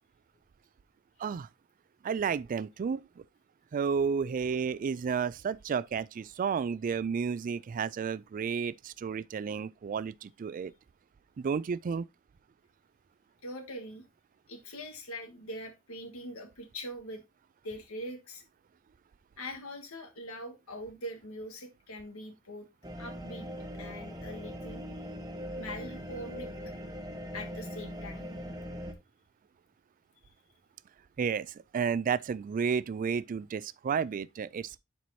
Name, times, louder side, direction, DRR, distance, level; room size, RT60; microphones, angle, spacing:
voice 1, 2.0-3.2 3.7-10.7 11.4-12.1 31.2-34.8, right 6 dB, 40° right, 0.3 m, -32 dB
voice 2, 13.4-14.0 14.5-17.2 17.6-18.4 19.4-22.7 23.0-23.5 23.8-24.8 25.6-26.5 27.3-28.3, equal, 80° left, 1.6 m, -42 dB
sound 1, 22.8-28.9, equal, 20° right, 1.2 m, -41 dB
11.0 x 4.7 x 2.8 m
head